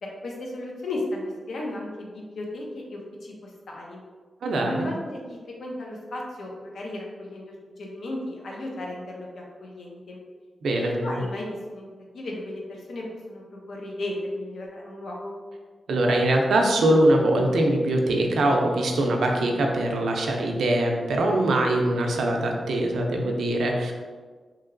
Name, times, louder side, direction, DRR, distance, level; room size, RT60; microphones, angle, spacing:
voice 1, 0.0-4.0 4.6-10.2 10.7-11.9 12.1-15.4, left 1 dB, 65° left, -2 dB, 0.6 m, -35 dB
voice 2, 4.4-4.9 10.6-11.2 15.9-23.9, right 1 dB, 85° right, 1 dB, 0.4 m, -22 dB
2.9 x 2.8 x 2.5 m, 1.5 s
wide cardioid pair, 165°, 0 cm